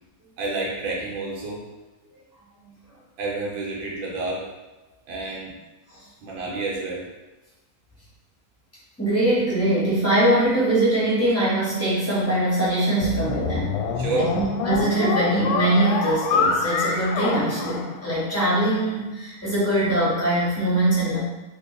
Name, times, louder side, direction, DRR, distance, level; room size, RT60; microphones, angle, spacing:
voice 1, 0.4-1.6 3.2-4.5 5.1-5.5 6.2-7.1 14.0-14.3, right 3 dB, 80° right, -4 dB, 1.6 m, -29 dB
voice 2, 9.0-13.7 14.1-21.2, right 1 dB, 25° left, -9 dB, 0.3 m, -22 dB
sound 1, 13.0-18.5, left 5 dB, 85° left, 1.3 m, -26 dB
3.5 x 2.0 x 3.8 m, 1.1 s
omnidirectional pair, 2.1 m